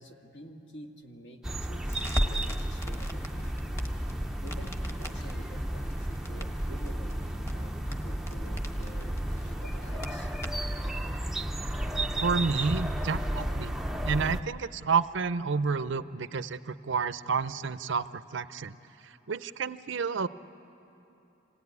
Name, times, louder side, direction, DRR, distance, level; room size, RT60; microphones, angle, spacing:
voice 1, 0.0-3.6 4.4-10.5, right 1 dB, 65° left, 3 dB, 1.8 m, -49 dB
sound 1, 1.4-14.4, right 1 dB, ahead, 0.5 m, -33 dB
Crackle, 1.9-10.8, equal, 15° left, 1.2 m, -39 dB
voice 2, 12.2-13.7 14.0-18.7 19.0-20.3, right 5 dB, 65° right, 14 dB, 0.5 m, -30 dB
26.5 x 18.0 x 9.6 m, 2.9 s
head